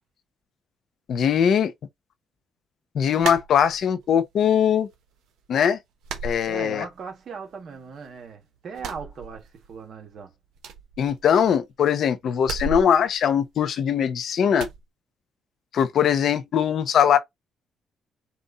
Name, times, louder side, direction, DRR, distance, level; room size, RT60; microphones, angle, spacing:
voice 1, 1.1-1.7 2.9-4.9 5.5-5.8 6.2-6.8 11.0-14.7 15.7-17.2, left 8 dB, 65° left, 0.8 m, -21 dB
sound 1, 3.2-4.1 4.5-5.2 5.4-5.6 6.0-7.2 7.5-8.3 8.7-9.9 10.1-10.2 10.5-11.7 12.4-14.0 14.5-14.8, right 4 dB, 85° right, 1.0 m, -36 dB
voice 2, 6.4-10.3, right 5 dB, 60° right, 1.6 m, -38 dB
4.4 x 2.7 x 4.1 m
cardioid pair, 90°, 0 cm